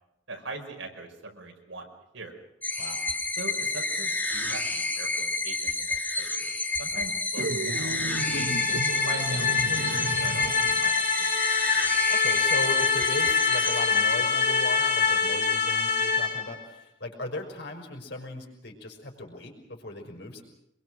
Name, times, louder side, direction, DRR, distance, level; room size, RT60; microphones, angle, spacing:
voice 1, 0.3-1.8 2.1-2.3 3.4-6.5 6.8-11.3, right 2 dB, 85° right, 2 dB, 5.5 m, -41 dB
sound 1, 2.6-14.5, left 2 dB, 10° left, 1.8 m, -30 dB
sound 2, 7.4-10.9, right 2 dB, 65° right, 1.3 m, -33 dB
sound 3, 8.1-16.5, left 5 dB, 40° left, 5.5 m, -25 dB
voice 2, 12.1-20.4, left 2 dB, 60° left, 2 dB, 5.6 m, -37 dB
26.0 x 23.0 x 6.3 m, 0.82 s
head